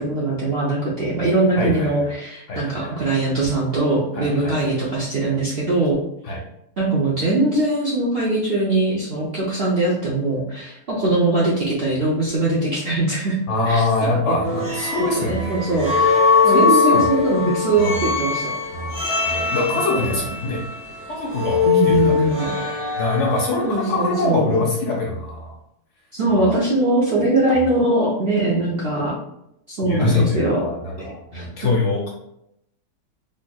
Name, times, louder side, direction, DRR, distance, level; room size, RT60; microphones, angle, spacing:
voice 1, 0.0-6.0 6.3-6.4 6.8-13.4 13.7-13.8 15.2-15.9 16.4-18.5 19.9-20.0 21.6-22.5 23.6-24.6 26.1-29.1 29.7-30.7 31.0-31.1 31.3-31.4, right 2 dB, 55° right, -5 dB, 0.7 m, -21 dB
voice 2, 1.6-2.0 2.5-3.0 4.1-4.7 6.2-6.4 13.5-16.0 16.5-17.2 17.8-18.1 18.7-20.6 21.1-22.6 23.0-25.5 26.3-26.6 29.8-32.1, left 3 dB, 60° left, -2 dB, 0.9 m, -24 dB
sound 1, 14.4-23.7, left 5 dB, 80° right, 1.6 m, -21 dB
4.2 x 3.0 x 2.2 m, 0.80 s
omnidirectional pair, 1.7 m